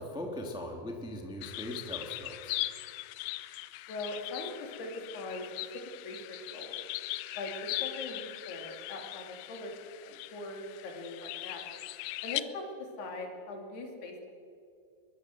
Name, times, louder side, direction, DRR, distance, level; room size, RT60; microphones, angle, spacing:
voice 1, 0.0-2.6, left 1 dB, ahead, 1 dB, 1.5 m, -40 dB
sound 1, 1.4-12.4, left 17 dB, 85° left, 3.1 m, -40 dB
voice 2, 3.9-5.5 6.0-6.8 7.4-9.7 10.0-11.8 12.2-14.3, left 2 dB, 60° left, 2 dB, 4.7 m, -41 dB
22.5 x 22.0 x 7.8 m, 2.5 s
omnidirectional pair, 5.3 m